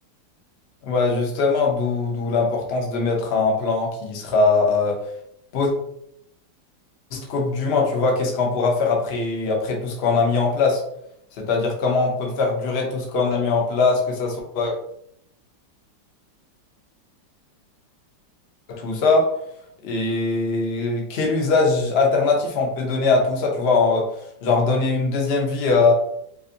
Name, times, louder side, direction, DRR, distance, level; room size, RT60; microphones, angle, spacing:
voice 1, 0.8-5.0 5.5-5.7 7.1-10.8 11.4-14.7 18.7-19.3 19.8-24.1 24.4-25.9, left 3 dB, 75° left, 0 dB, 0.5 m, -21 dB
3.8 x 2.5 x 2.7 m, 0.74 s
omnidirectional pair, 2.1 m